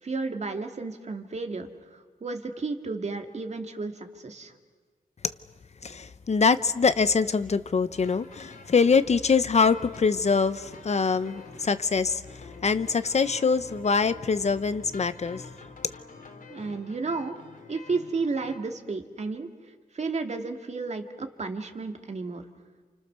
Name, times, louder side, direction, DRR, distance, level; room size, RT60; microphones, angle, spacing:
voice 1, 0.0-4.5 16.5-17.4 17.7-19.5 19.9-22.4, right 3 dB, 45° right, 6 dB, 2.1 m, -32 dB
voice 2, 5.8-15.4, left 5 dB, 45° left, 13 dB, 0.8 m, -24 dB
sound 1, 7.9-18.6, left 4 dB, 60° left, 2.8 m, -48 dB
29.5 x 28.5 x 6.8 m, 1.4 s
wide cardioid pair, 145°, 16 cm